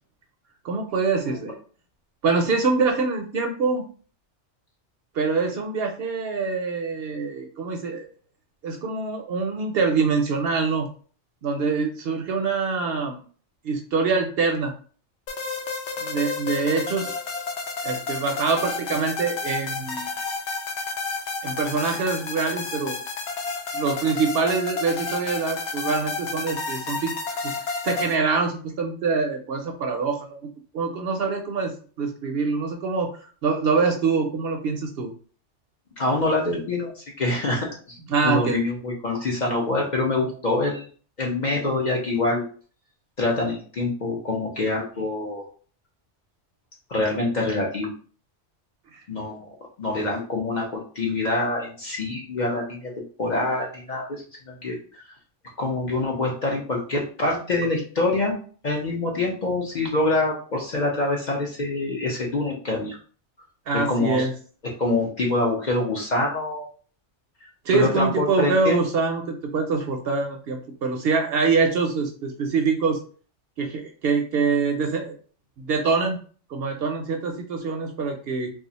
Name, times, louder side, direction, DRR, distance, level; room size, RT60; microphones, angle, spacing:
voice 1, 0.6-1.6 2.2-3.8 5.1-8.1 8.6-10.9 11.4-13.2 13.6-14.7 16.0-17.1 17.8-20.1 21.4-23.0 23.7-27.1 27.4-27.5 27.8-30.4 30.7-35.1 38.1-38.6 48.9-49.0 63.7-64.3 67.6-73.0 73.6-75.2 75.6-76.2 76.5-78.5, right 4 dB, 65° right, 3 dB, 0.7 m, -24 dB
sound 1, 15.3-28.2, left 4 dB, 75° left, 0.9 m, -31 dB
voice 2, 36.0-38.0 38.2-40.9 41.2-42.4 43.2-45.4 46.9-47.9 49.1-49.5 49.8-54.8 55.6-58.4 58.6-63.0 63.7-64.3 64.8-66.7 67.7-68.8, left 2 dB, 50° left, -1 dB, 0.6 m, -25 dB
2.4 x 2.3 x 3.9 m, 0.41 s
omnidirectional pair, 1.2 m